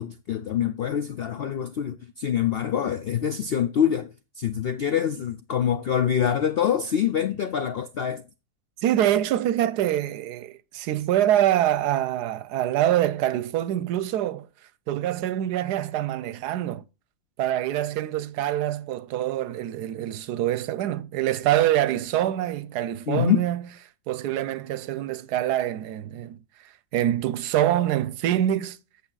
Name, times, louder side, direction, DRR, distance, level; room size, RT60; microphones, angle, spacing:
voice 1, 0.0-8.2 23.1-23.4, left 9 dB, 75° left, 0.5 m, -25 dB
voice 2, 8.8-14.5 14.9-16.8 17.4-23.7 24.1-28.8, right 12 dB, 85° right, 1.2 m, -25 dB
8.5 x 7.1 x 3.9 m
omnidirectional pair, 1.7 m